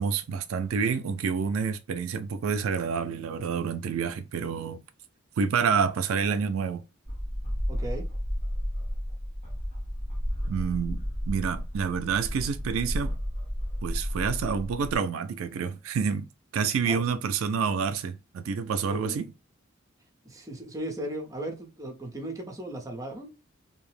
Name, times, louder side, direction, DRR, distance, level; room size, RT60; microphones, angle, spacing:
voice 1, 0.0-4.8 5.4-6.8 10.5-13.2 13.8-16.3 16.5-19.3, right 6 dB, 75° right, 0.4 m, -28 dB
sound 1, 7.1-15.0, equal, 35° left, 1.0 m, -32 dB
voice 2, 7.7-8.1 16.9-17.0 18.9-19.2 20.2-23.3, right 1 dB, 15° right, 0.6 m, -36 dB
2.7 x 2.0 x 3.1 m
head